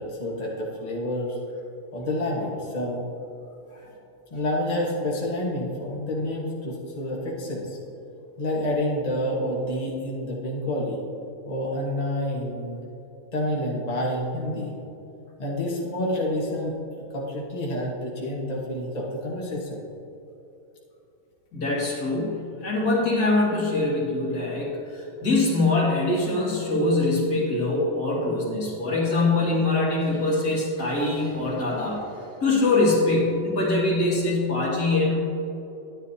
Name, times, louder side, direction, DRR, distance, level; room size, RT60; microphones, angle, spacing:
voice 1, 0.0-1.4 1.9-3.0 4.3-7.8 8.4-11.0 11.5-12.8 13.3-14.7 15.4-16.8 17.1-19.8, left 1 dB, 25° left, -4 dB, 1.4 m, -28 dB
voice 2, 21.5-32.0 32.4-35.2, left 2 dB, 70° left, -4 dB, 2.5 m, -23 dB
11.0 x 10.5 x 2.8 m, 2.9 s
omnidirectional pair, 1.7 m